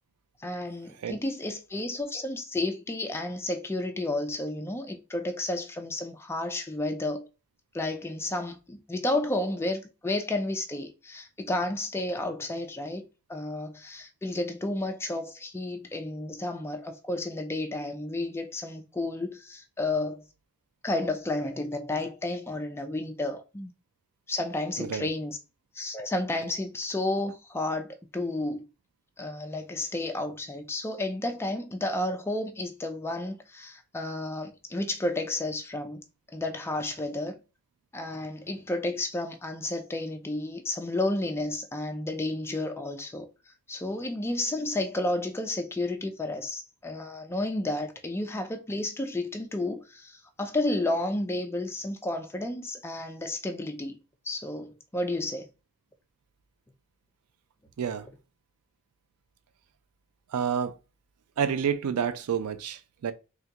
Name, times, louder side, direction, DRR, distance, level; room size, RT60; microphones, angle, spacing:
voice 1, 0.4-7.3 7.7-13.0 13.3-20.2 20.8-23.7 24.3-25.4 25.7-28.7 29.2-36.0 36.3-37.4 37.9-43.3 43.7-54.0 54.3-55.5, left 2 dB, 10° left, 0.3 m, -31 dB
voice 2, 24.8-25.1 57.8-58.1 60.3-60.8 61.4-63.1, right 7 dB, 85° right, 0.4 m, -29 dB
3.6 x 2.2 x 2.8 m
head